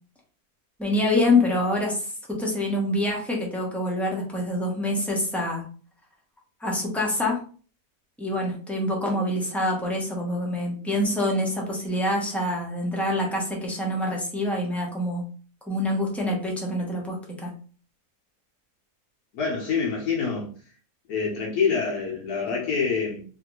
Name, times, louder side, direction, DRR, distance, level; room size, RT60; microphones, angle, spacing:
voice 1, 0.8-5.6 6.6-7.4 8.2-15.3 15.7-17.5, left 1 dB, ahead, -2 dB, 0.3 m, -26 dB
voice 2, 19.3-20.5 21.1-23.2, left 5 dB, 80° left, -3 dB, 1.3 m, -26 dB
3.1 x 2.6 x 2.9 m, 0.41 s
omnidirectional pair, 1.6 m